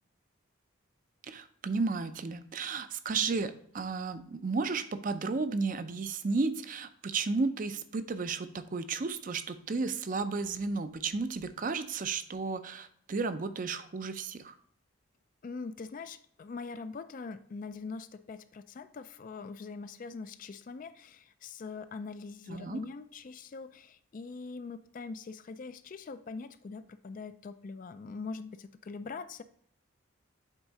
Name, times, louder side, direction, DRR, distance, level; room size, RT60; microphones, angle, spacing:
voice 1, 1.2-14.5 22.5-22.8, right 4 dB, 40° right, 10 dB, 0.5 m, -33 dB
voice 2, 15.4-29.4, left 4 dB, 40° left, 12 dB, 0.3 m, -42 dB
8.1 x 3.6 x 4.0 m, 0.64 s
head